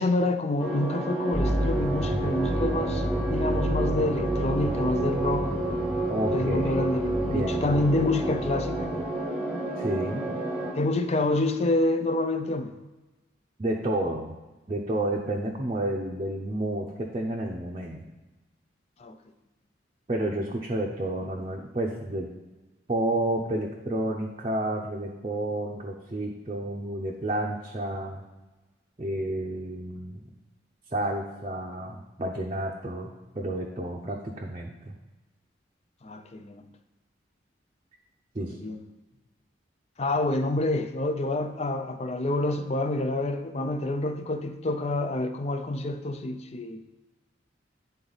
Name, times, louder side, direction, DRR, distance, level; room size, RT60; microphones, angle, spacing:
voice 1, 0.0-5.6 6.3-8.9 10.7-12.8 19.0-19.2 36.0-36.7 38.5-38.8 40.0-46.8, left 2 dB, 35° left, 9 dB, 0.4 m, -27 dB
sound 1, 0.6-10.7, right 2 dB, 5° right, 1.1 m, -30 dB
sound 2, 1.3-9.1, equal, 10° left, 0.8 m, -31 dB
voice 2, 6.1-6.8 7.1-7.8 9.8-10.2 13.6-14.3 14.7-16.9 17.1-18.0 20.1-22.3 22.9-28.2 29.0-30.2 30.9-34.9 38.3-38.5, right 1 dB, 30° right, -2 dB, 0.6 m, -30 dB
9.6 x 3.9 x 3.9 m, 1.1 s
head